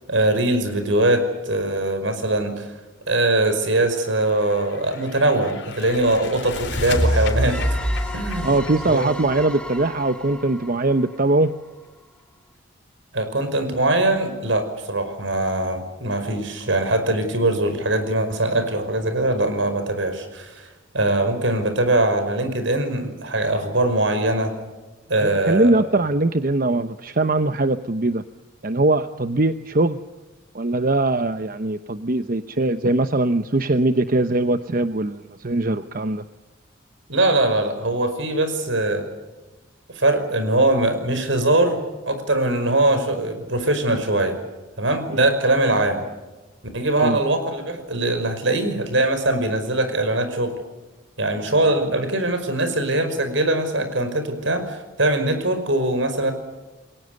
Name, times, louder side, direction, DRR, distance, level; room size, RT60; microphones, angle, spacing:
voice 1, 0.1-2.7 3.1-7.8 8.1-8.6 8.8-9.1 13.1-20.7 20.9-24.6 25.1-25.8 37.1-39.1 39.9-44.4 44.8-46.0 46.7-50.6 51.2-56.3, right 2 dB, 70° right, 5.4 m, -22 dB
sound 1, 4.3-10.1, equal, 60° left, 4.3 m, -27 dB
sound 2, 7.5-12.0, equal, 5° left, 2.0 m, -37 dB
voice 2, 8.4-11.5 25.2-28.2 28.6-30.0 30.5-36.2 45.1-45.2 46.9-47.2, right 2 dB, 45° right, 0.9 m, -21 dB
29.5 x 22.5 x 6.6 m
head